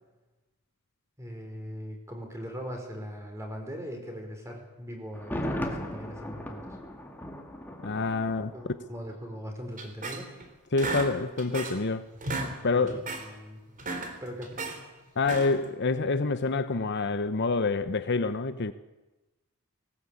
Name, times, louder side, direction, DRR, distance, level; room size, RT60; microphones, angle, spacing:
voice 1, 1.2-6.8 8.5-10.3 12.7-13.6 14.2-14.5, equal, 15° right, 3 dB, 4.9 m, -40 dB
Thunder, 5.1-9.1 9.3-9.4, equal, 10° left, 2.3 m, -37 dB
voice 2, 7.8-8.5 10.7-12.1 12.6-13.0 15.2-18.7, left 3 dB, 50° left, 11 dB, 0.8 m, -27 dB
sound 1, 9.8-10.5 10.8-11.9 12.1-12.5 12.9-13.3 13.7-14.8 15.2-15.7, right 2 dB, 40° right, 3.4 m, -35 dB
19.5 x 19.0 x 8.6 m, 1.1 s
head